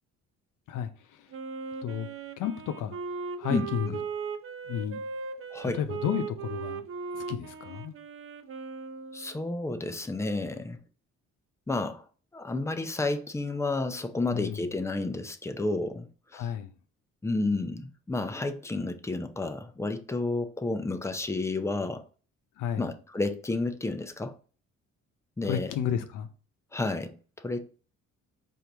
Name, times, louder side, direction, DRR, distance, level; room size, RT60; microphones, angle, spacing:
voice 1, 0.7-1.3 1.8-2.1 2.4-3.0 3.4-4.0 4.7-5.0 5.6-6.8 7.1-7.9 14.3-14.6 16.3-16.7 22.6-22.9 25.4-26.3, left 9 dB, 85° left, 0.7 m, -32 dB
Wind instrument woodwind instrument, 1.3-9.4, right 5 dB, 45° right, 0.6 m, -38 dB
voice 2, 9.1-10.8 11.7-12.0 12.3-16.1 16.3-16.5 17.2-22.0 22.8-24.4 25.4-25.7 26.7-27.8, left 2 dB, 10° left, 0.5 m, -31 dB
4.5 x 2.6 x 3.4 m
cardioid pair, 90°, 30 cm